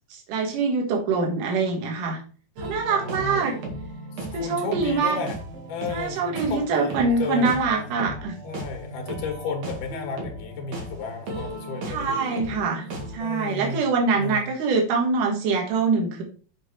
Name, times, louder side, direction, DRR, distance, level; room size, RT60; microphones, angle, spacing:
voice 1, 0.1-2.2 2.6-3.5 4.3-5.2 5.9-8.4 11.9-12.9 13.1-16.2, right 4 dB, 75° right, 1 dB, 3.1 m, -24 dB
sound 1, 2.6-13.2, right 1 dB, 55° right, 3.2 m, -36 dB
voice 2, 2.9-3.6 4.2-5.4 5.7-7.6 8.4-12.6 13.2-13.8 14.1-14.5, left 4 dB, 70° left, 4 dB, 3.1 m, -33 dB
7.2 x 6.7 x 4.5 m, 0.41 s
omnidirectional pair, 3.8 m